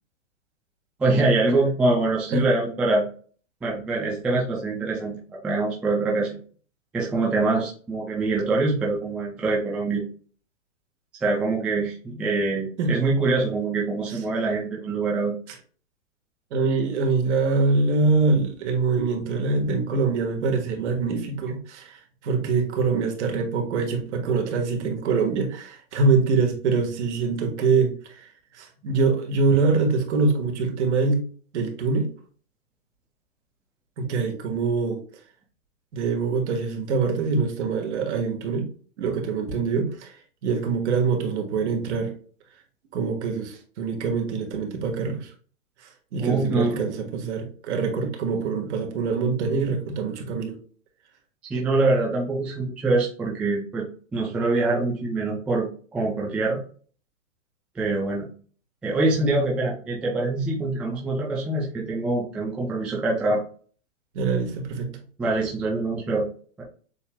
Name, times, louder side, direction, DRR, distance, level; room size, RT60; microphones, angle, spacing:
voice 1, 1.0-3.1 3.6-5.1 5.4-6.4 6.9-10.0 11.2-15.3 46.2-46.8 51.5-53.9 54.1-56.6 57.8-58.3 58.8-63.4 65.2-66.3 66.6-66.7, right 2 dB, 5° right, 0.3 m, -24 dB
voice 2, 16.5-28.2 28.5-31.2 31.5-32.1 34.0-35.0 35.9-38.7 39.0-40.2 40.4-42.1 42.9-45.3 46.1-50.6 64.1-65.0, right 4 dB, 60° right, 1.6 m, -24 dB
7.1 x 3.2 x 2.3 m
hypercardioid pair, 130°, 39 cm